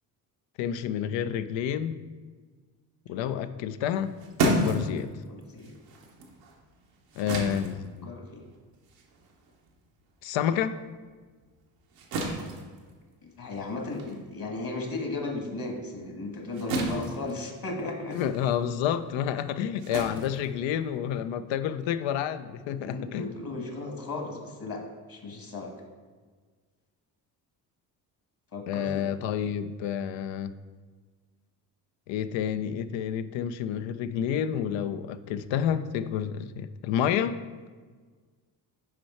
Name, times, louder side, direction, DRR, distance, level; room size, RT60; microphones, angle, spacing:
voice 1, 0.6-2.0 3.1-4.2 4.4-5.1 7.2-8.1 10.2-10.8 18.1-23.3 28.7-30.5 32.1-37.4, left 9 dB, 70° left, 12 dB, 0.5 m, -29 dB
sound 1, 3.8-10.6 11.0-21.2, right 2 dB, 90° right, 1.0 m, -34 dB
voice 2, 5.3-5.7 8.0-8.4 13.2-18.2 22.8-24.8 25.1-25.7 28.5-29.0, left 2 dB, 45° left, 2 dB, 1.6 m, -35 dB
5.9 x 4.7 x 4.3 m, 1.5 s
hypercardioid pair, 45°, 47 cm